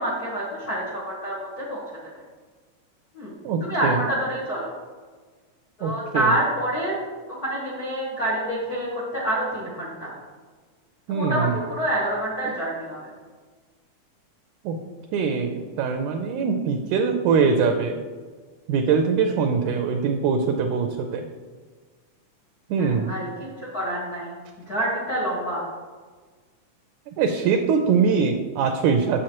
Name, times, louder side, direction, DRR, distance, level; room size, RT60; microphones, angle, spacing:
voice 1, 0.0-1.8 3.1-3.3 3.6-4.7 5.8-6.9 7.3-10.1 11.1-13.1 19.6-19.7 22.8-23.3 23.6-24.3 24.7-25.6, right 1 dB, 65° left, -6 dB, 0.9 m, -27 dB
voice 2, 3.4-4.0 5.8-6.3 11.1-11.5 14.6-14.8 15.1-17.9 18.7-21.3 22.7-23.1 27.2-29.2, right 5 dB, 80° right, 5 dB, 1.8 m, -22 dB
7.6 x 6.8 x 2.9 m, 1.5 s
omnidirectional pair, 3.7 m